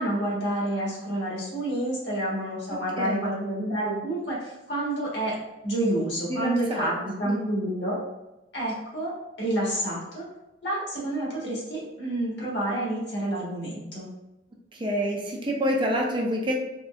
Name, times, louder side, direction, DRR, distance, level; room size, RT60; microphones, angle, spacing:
voice 1, 0.0-5.4 5.6-8.0 8.5-9.1 9.4-10.2 10.6-14.0, right 1 dB, 60° left, -5 dB, 1.4 m, -29 dB
voice 2, 2.7-3.2 6.3-6.9 7.2-7.4 14.7-16.5, equal, 25° right, 0 dB, 0.5 m, -27 dB
3.8 x 3.2 x 2.4 m, 1.0 s
head